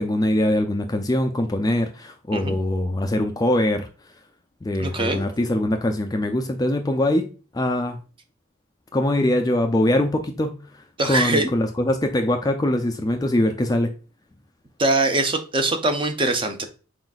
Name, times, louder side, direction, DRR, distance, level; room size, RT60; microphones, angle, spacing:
voice 1, 0.0-3.9 4.6-7.3 7.5-8.0 8.9-13.9, left 1 dB, 20° left, 0.4 m, -22 dB
voice 2, 4.8-5.2 11.0-11.5 14.8-16.7, right 2 dB, 25° right, 0.6 m, -22 dB
4.9 x 3.9 x 2.3 m
head